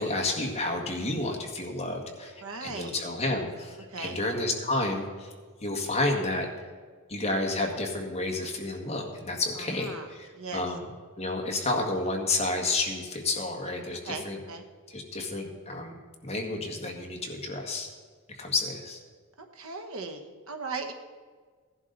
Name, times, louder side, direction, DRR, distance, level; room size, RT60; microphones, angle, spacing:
voice 1, 0.0-5.3 5.6-6.7 7.1-10.8 11.2-14.4 14.9-15.9 16.2-17.9 18.4-19.0, left 2 dB, 30° left, 1 dB, 1.8 m, -30 dB
voice 2, 2.4-3.0 3.9-4.2 9.6-10.1 10.3-10.7 14.1-14.6 19.5-20.9, right 4 dB, 65° right, 6 dB, 1.2 m, -38 dB
16.5 x 11.0 x 4.0 m, 1.5 s
head